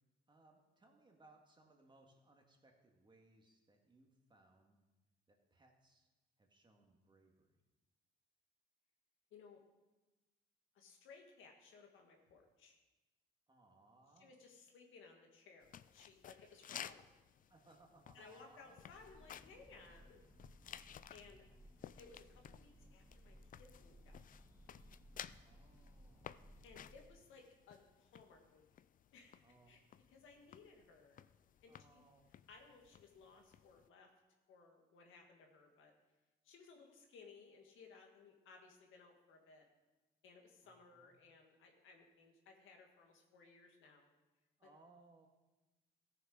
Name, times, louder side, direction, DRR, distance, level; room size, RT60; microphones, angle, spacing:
voice 1, 0.3-4.8 5.3-6.1 6.4-7.5 13.5-14.3 17.5-18.8 21.1-21.3 25.2-26.5 29.4-29.7 31.7-32.2 40.6-41.1 44.6-45.3, right 2 dB, 25° right, 1 dB, 1.9 m, -67 dB
voice 2, 9.3-9.6 10.7-12.8 14.2-17.0 18.1-20.2 21.1-21.4 22.0-24.2 26.6-28.6 29.1-29.4 29.7-29.8 30.1-31.2 31.6-32.1 32.5-34.1 34.5-35.9 36.4-39.7 40.2-44.1, left 4 dB, 80° left, 2 dB, 1.8 m, -61 dB
sound 1, 15.6-33.9, left 9 dB, 45° left, 0.4 m, -56 dB
Breathing / Bird, 18.7-27.2, equal, 15° left, 2.0 m, -62 dB
14.5 x 6.8 x 4.9 m, 1.1 s
cardioid pair, 90°, 20 cm